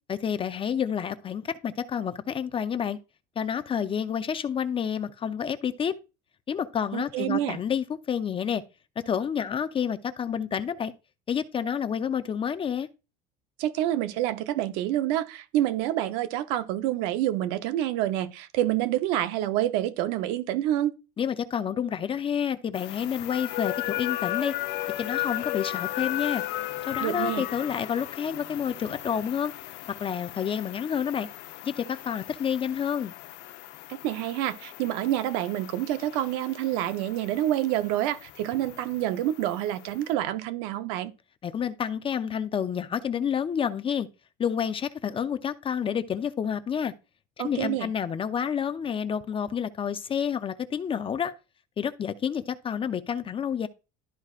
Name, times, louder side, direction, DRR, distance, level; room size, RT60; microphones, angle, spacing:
voice 1, 0.1-3.0 3.4-5.9 6.5-8.6 9.0-10.9 11.3-12.9 21.2-24.5 25.0-26.4 26.9-29.5 30.0-31.3 31.6-33.1 41.4-44.1 44.4-46.9 47.4-51.3 51.8-53.7, left 8 dB, 25° left, 0.5 m, -29 dB
voice 2, 6.9-7.6 13.6-20.9 27.0-27.5 33.9-41.1 47.4-47.9, right 13 dB, 80° right, 0.7 m, -27 dB
sound 1, 22.7-40.1, left 16 dB, 60° left, 0.7 m, -36 dB
12.5 x 4.7 x 2.4 m
cardioid pair, 125°, 19 cm